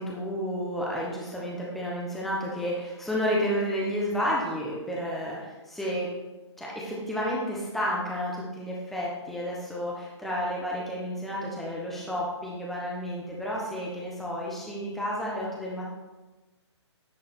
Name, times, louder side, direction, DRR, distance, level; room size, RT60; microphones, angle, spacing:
voice 1, 0.0-6.1 6.6-15.9, equal, ahead, -5 dB, 1.0 m, -31 dB
10.0 x 3.6 x 4.5 m, 1.2 s
figure-of-eight pair, 130°, 15 cm